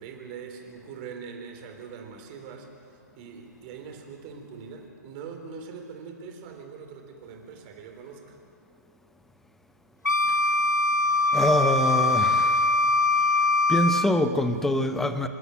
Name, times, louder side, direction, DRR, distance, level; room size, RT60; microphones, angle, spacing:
voice 1, 0.0-2.7 3.2-8.4, right 6 dB, 30° right, 4 dB, 3.5 m, -42 dB
Wind instrument woodwind instrument, 10.1-14.1, left 2 dB, 85° left, 0.6 m, -22 dB
voice 2, 11.3-12.8 13.2-13.3 13.7-15.3, left 1 dB, 5° left, 9 dB, 1.0 m, -25 dB
27.5 x 12.5 x 9.0 m, 2.4 s
figure-of-eight pair, 125°, 9 cm